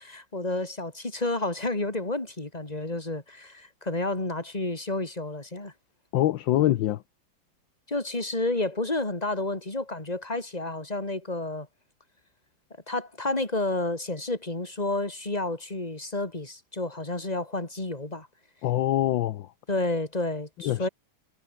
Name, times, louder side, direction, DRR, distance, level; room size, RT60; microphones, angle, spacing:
voice 1, 0.0-5.7 7.9-11.7 12.9-18.3 19.7-20.9, left 2 dB, 20° left, 3.5 m, -30 dB
voice 2, 6.1-7.0 18.6-19.5 20.6-20.9, left 13 dB, 75° left, 1.5 m, -24 dB
omnidirectional pair, 2.1 m